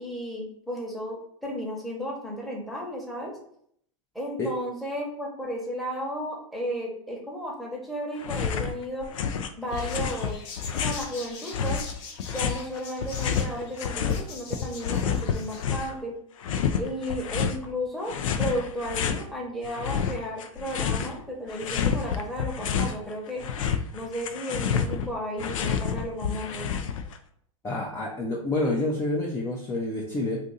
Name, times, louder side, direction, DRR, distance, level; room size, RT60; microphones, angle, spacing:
voice 1, 0.0-3.3 4.1-9.1 9.6-10.4 10.8-11.8 12.3-16.2 16.8-23.4 23.9-26.7, equal, ahead, -2 dB, 0.9 m, -34 dB
sound 1, 8.2-8.7 9.0-11.1 11.5-14.2 14.5-16.0 16.4-17.6 18.1-19.2 19.6-21.2 21.5-23.0 23.3-27.2, left 7 dB, 75° left, 0.4 m, -29 dB
sound 2, 9.7-15.6, left 4 dB, 50° left, 0.8 m, -43 dB
voice 2, 27.6-30.4, left 2 dB, 15° left, -2 dB, 0.5 m, -28 dB
2.6 x 2.5 x 3.9 m, 0.67 s
hypercardioid pair, 110°, 17 cm